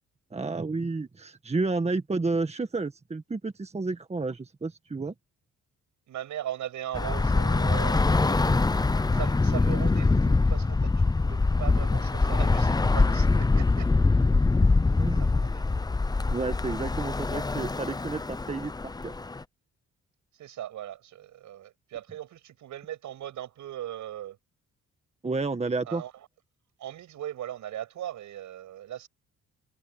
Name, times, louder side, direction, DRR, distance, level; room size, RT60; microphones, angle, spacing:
voice 1, 0.3-5.1 14.9-15.3 16.3-19.1 25.2-26.0, right 3 dB, 20° right, 1.7 m, -31 dB
voice 2, 6.1-8.6 9.1-13.3 13.6-13.9 14.6-14.8 15.2-15.9 20.4-24.4 25.9-26.1 26.8-29.1, right 12 dB, 75° right, 8.0 m, -39 dB
Bus / Traffic noise roadway noise, 6.9-19.4, left 3 dB, 15° left, 0.7 m, -24 dB
cardioid pair, 90°, 30 cm